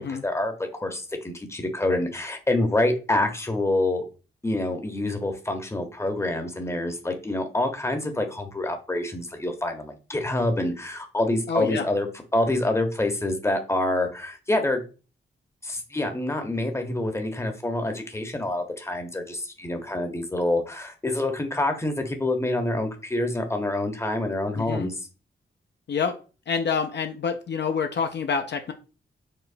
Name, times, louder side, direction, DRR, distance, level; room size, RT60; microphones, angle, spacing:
voice 1, 0.0-4.0 4.4-14.8 15.6-25.0, left 1 dB, 15° left, 5 dB, 0.7 m, -27 dB
voice 2, 11.5-11.9 24.5-24.9 25.9-26.2 26.5-28.7, left 6 dB, 55° left, 6 dB, 0.4 m, -27 dB
4.7 x 2.0 x 2.5 m, 0.34 s
cardioid pair, 60°, 21 cm